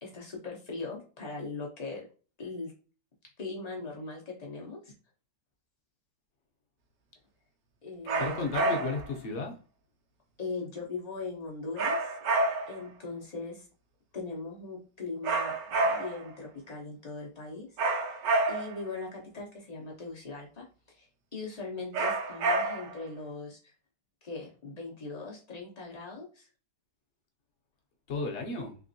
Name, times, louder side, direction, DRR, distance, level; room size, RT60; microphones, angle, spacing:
voice 1, 0.0-2.0 2.4-2.7 3.4-4.9 7.8-8.4 10.4-12.2 12.7-13.7 14.1-17.7 18.5-23.7 24.2-26.5, left 3 dB, 75° left, 0.3 m, -40 dB
sound 1, 8.1-9.1 11.8-12.9 15.2-16.3 17.8-18.9 21.9-23.0, right 2 dB, 75° right, 1.3 m, -29 dB
voice 2, 8.2-9.6 28.1-28.8, left 3 dB, 55° left, 0.8 m, -33 dB
3.5 x 3.1 x 2.6 m
omnidirectional pair, 2.0 m